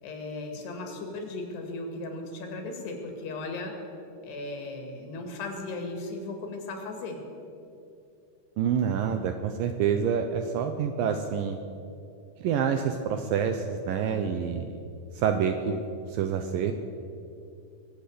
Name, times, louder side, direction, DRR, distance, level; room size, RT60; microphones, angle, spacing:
voice 1, 0.0-3.8 4.2-7.2, left 2 dB, 85° left, 3 dB, 4.2 m, -36 dB
voice 2, 8.6-11.6 12.4-14.8 15.1-16.7, right 7 dB, 80° right, 6 dB, 2.1 m, -27 dB
23.0 x 8.1 x 6.7 m, 2.6 s
omnidirectional pair, 4.7 m